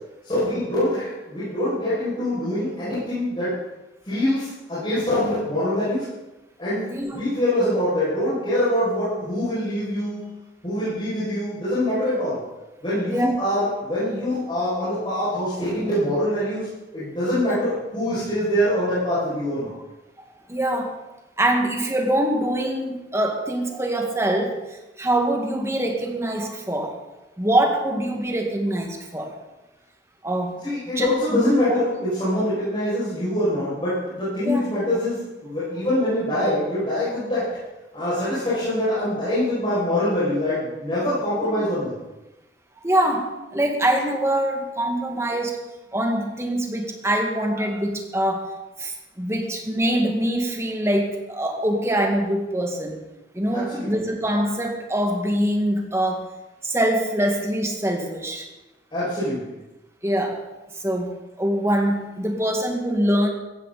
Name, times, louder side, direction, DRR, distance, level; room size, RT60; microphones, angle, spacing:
voice 1, 0.2-3.5 4.0-6.0 6.6-6.9 7.1-10.2 10.6-12.4 12.8-16.7 16.9-19.7 30.6-37.5 37.9-41.9 53.5-53.9 58.9-59.5, left 1 dB, 25° left, -12 dB, 6.7 m, -24 dB
voice 2, 13.1-13.4 17.5-17.6 20.5-20.9 21.4-26.9 27.4-29.3 30.2-30.6 31.0-31.8 34.4-34.6 41.6-41.7 42.8-45.6 45.9-48.5 48.8-53.0 53.3-56.3 56.6-58.5 60.0-60.4 60.8-63.3, right 1 dB, 15° right, 2 dB, 1.9 m, -24 dB
16.5 x 14.5 x 4.2 m, 1.0 s
head